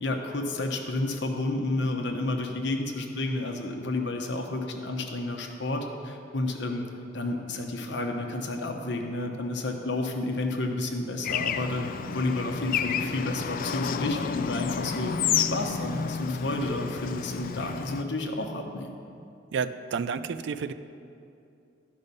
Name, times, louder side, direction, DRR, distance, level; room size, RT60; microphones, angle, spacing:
voice 1, 0.0-6.8 7.1-18.9, left 2 dB, 65° left, 3 dB, 1.0 m, -31 dB
Bird / Traffic noise roadway noise, 11.2-18.0, left 7 dB, 45° left, 0.3 m, -30 dB
voice 2, 19.5-20.7, right 5 dB, 65° right, 12 dB, 0.4 m, -30 dB
12.0 x 5.4 x 5.4 m, 2.5 s
head